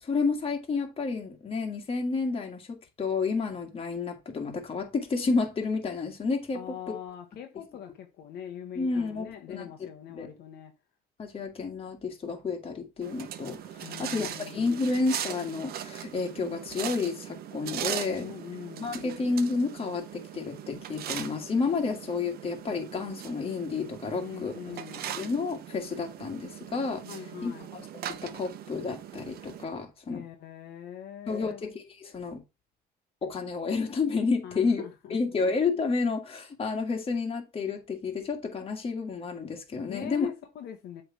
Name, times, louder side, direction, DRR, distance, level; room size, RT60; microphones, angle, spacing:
voice 1, 0.0-6.9 8.8-9.7 10.2-10.3 11.2-18.3 18.8-24.5 25.1-27.0 27.4-30.2 31.3-32.4 33.2-34.8 35.1-40.3, left 4 dB, 35° left, 1.8 m, -30 dB
voice 2, 6.5-10.7 13.8-14.8 18.2-19.0 24.2-25.2 27.0-27.7 30.1-31.6 34.4-35.4 39.9-41.0, left 9 dB, 70° left, 1.0 m, -42 dB
sound 1, 13.0-29.6, right 10 dB, 65° right, 0.8 m, -40 dB
7.9 x 3.4 x 4.6 m
cardioid pair, 110°, 17 cm